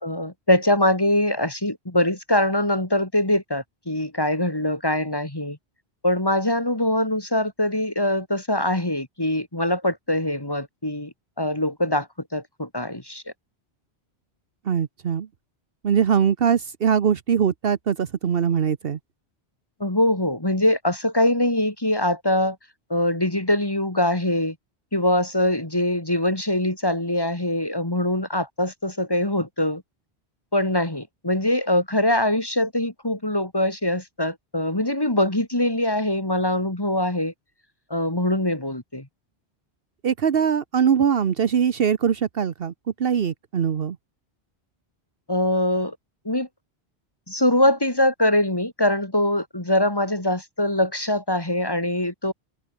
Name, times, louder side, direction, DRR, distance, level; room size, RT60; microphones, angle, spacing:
voice 1, 0.0-5.6 6.0-12.1 12.3-13.2 19.8-22.6 22.9-24.5 24.9-29.8 30.5-37.3 37.9-39.1 45.3-46.0 46.2-46.5 47.3-52.3, left 1 dB, 20° left, 2.6 m, -23 dB
voice 2, 14.7-15.3 15.8-19.0 40.0-42.7 43.0-44.0, right 7 dB, 65° right, 1.1 m, -22 dB
omnidirectional pair, 1.1 m